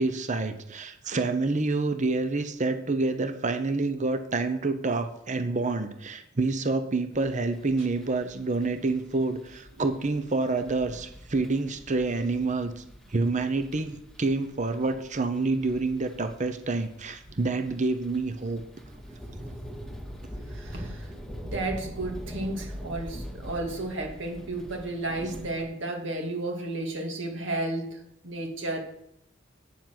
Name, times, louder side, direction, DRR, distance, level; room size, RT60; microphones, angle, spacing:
voice 1, 0.0-18.6 25.2-25.3, right 3 dB, 40° right, 9 dB, 0.8 m, -28 dB
sound 1, 7.1-25.6, equal, 5° left, 1.8 m, -43 dB
voice 2, 20.5-21.1 21.4-28.8, right 2 dB, 70° right, 2 dB, 2.3 m, -33 dB
9.1 x 7.1 x 5.9 m, 0.77 s
head